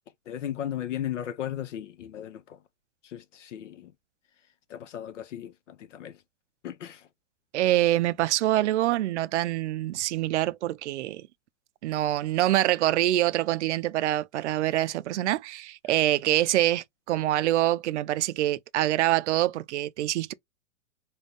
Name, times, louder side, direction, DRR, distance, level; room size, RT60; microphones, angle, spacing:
voice 1, 0.3-2.6 3.0-3.9 4.7-6.2 6.6-7.1, left 11 dB, 65° left, 0.8 m, -36 dB
voice 2, 7.5-11.2 11.8-20.3, right 14 dB, 60° right, 0.5 m, -25 dB
3.7 x 2.3 x 3.8 m
hypercardioid pair, 115°, 39 cm